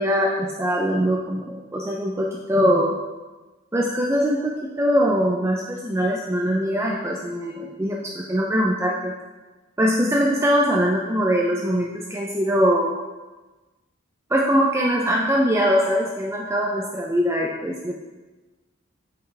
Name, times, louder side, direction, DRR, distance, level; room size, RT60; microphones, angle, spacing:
voice 1, 0.0-3.0 3.7-9.1 9.8-12.9 14.3-18.0, equal, 15° right, -2 dB, 0.4 m, -22 dB
6.8 x 5.6 x 3.3 m, 1.2 s
head